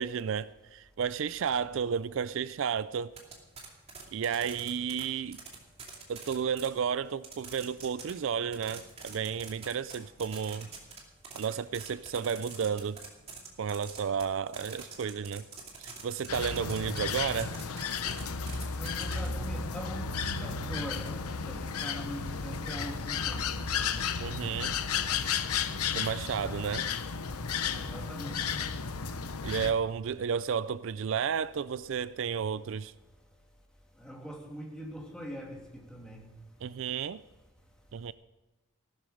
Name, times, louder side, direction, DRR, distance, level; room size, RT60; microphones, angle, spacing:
voice 1, 0.0-3.2 4.1-5.4 6.1-10.7 11.3-13.0 13.6-15.5 15.8-17.6 24.2-24.8 25.9-26.9 29.4-32.9 36.6-37.2 37.9-38.1, right 7 dB, 60° right, 0.3 m, -32 dB
sound 1, 3.2-5.0 5.3-6.7 7.2-8.1 8.4-11.0 11.2-19.3, right 6 dB, 25° right, 2.6 m, -44 dB
sound 2, 16.3-29.7, left 6 dB, 90° left, 0.9 m, -33 dB
voice 2, 18.8-23.7 27.7-28.6 34.0-36.3, equal, 5° left, 2.5 m, -42 dB
15.5 x 13.0 x 5.0 m
head